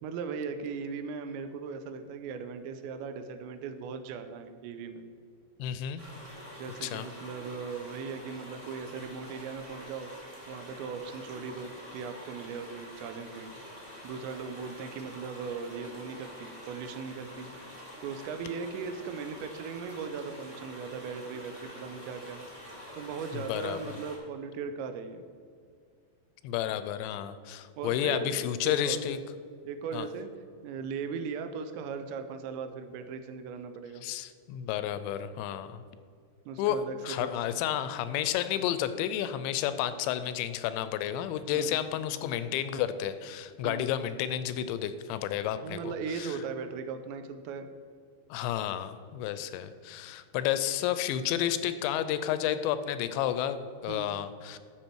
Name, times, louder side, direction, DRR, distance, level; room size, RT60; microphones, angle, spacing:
voice 1, 0.0-5.0 6.6-10.1 10.5-17.5 18.0-22.4 22.9-25.2 27.8-28.4 28.6-29.0 29.7-30.3 30.6-34.1 36.5-37.4 41.5-41.9 43.6-44.0 45.6-47.7 53.9-54.2, right 5 dB, 80° right, 8 dB, 2.8 m, -38 dB
voice 2, 5.6-6.0 6.8-7.1 23.3-24.0 26.4-29.2 29.9-30.1 34.0-35.8 36.6-46.4 48.3-54.6, left 10 dB, 85° left, 12 dB, 2.7 m, -31 dB
sound 1, 6.0-24.2, equal, 40° right, 0.4 m, -47 dB
13.0 x 6.6 x 4.5 m, 2.1 s
omnidirectional pair, 5.3 m